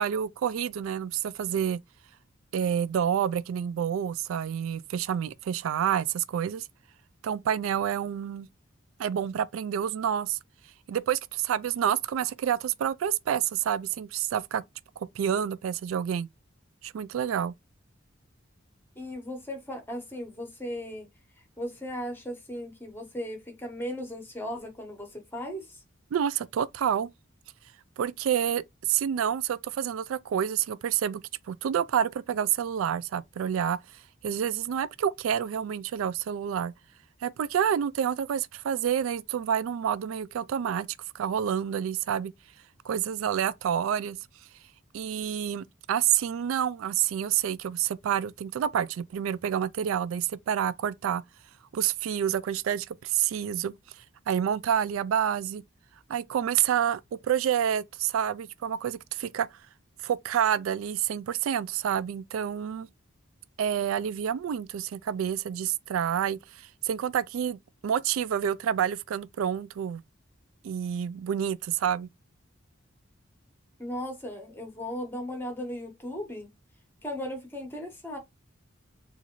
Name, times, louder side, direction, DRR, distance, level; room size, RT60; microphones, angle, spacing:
voice 1, 0.0-1.8 2.5-6.6 7.2-8.5 9.0-10.4 10.9-14.6 15.0-16.3 16.8-17.5 26.1-27.1 28.0-28.6 28.9-31.2 31.5-33.8 34.2-36.7 37.2-40.9 41.1-42.3 42.8-44.2 44.9-51.2 51.7-53.7 54.3-55.6 56.1-59.5 60.0-62.9 63.6-67.6 67.8-70.0 70.6-72.1, right 9 dB, 90° right, 0.3 m, -28 dB
voice 2, 19.0-21.1 21.4-25.8 73.8-76.5 77.0-78.2, equal, 10° left, 1.0 m, -37 dB
4.0 x 2.5 x 2.9 m
head